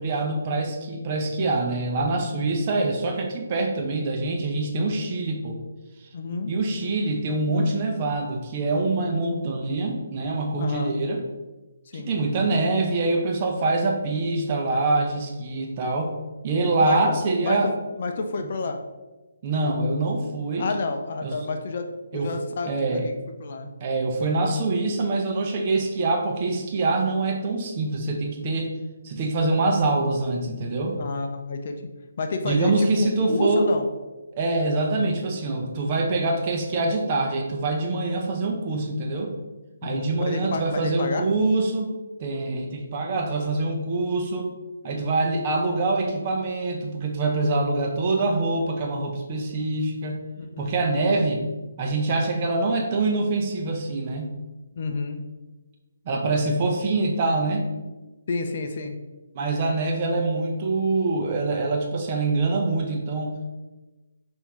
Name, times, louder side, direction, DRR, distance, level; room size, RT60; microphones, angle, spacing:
voice 1, 0.0-5.6 6.5-11.2 11.9-16.1 16.4-17.7 18.4-18.5 19.4-20.7 21.2-21.4 22.1-22.3 22.6-23.0 23.8-28.7 29.0-31.0 32.4-33.7 34.3-39.3 39.8-41.9 42.2-44.5 44.8-50.2 50.6-51.4 51.8-54.3 56.1-57.7 59.3-63.5, right 2 dB, 35° right, 2 dB, 0.7 m, -25 dB
voice 2, 6.1-6.5 10.6-11.0 11.9-12.1 16.8-18.8 20.6-21.9 22.1-23.1 23.4-23.7 31.0-31.8 32.2-33.9 39.8-41.3 44.8-45.1 50.4-50.7 54.8-55.2 58.3-59.0, left 3 dB, 50° left, 5 dB, 0.5 m, -29 dB
5.5 x 2.7 x 3.1 m, 1.2 s
hypercardioid pair, 155°, 0 cm